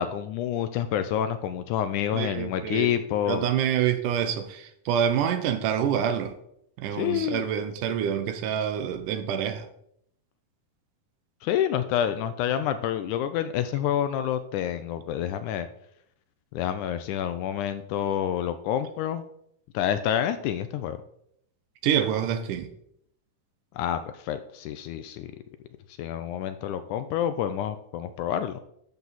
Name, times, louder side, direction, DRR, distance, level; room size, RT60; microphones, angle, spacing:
voice 1, 0.0-3.5 7.0-7.4 11.4-15.7 16.5-19.2 19.7-21.0 23.8-25.3 26.0-28.6, left 10 dB, 80° left, 1.9 m, -28 dB
voice 2, 2.1-2.9 3.3-6.3 6.8-9.7 21.8-22.7, right 9 dB, 75° right, 2.2 m, -27 dB
12.0 x 7.0 x 4.1 m
omnidirectional pair, 3.9 m